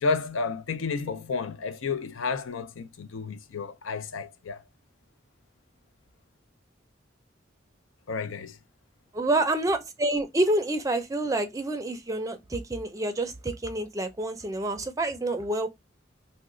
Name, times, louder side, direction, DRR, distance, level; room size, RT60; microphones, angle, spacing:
voice 1, 0.0-4.6 8.1-8.6, left 4 dB, 90° left, 0.5 m, -31 dB
voice 2, 9.1-15.7, right 2 dB, 15° right, 0.4 m, -28 dB
2.9 x 2.1 x 3.6 m
head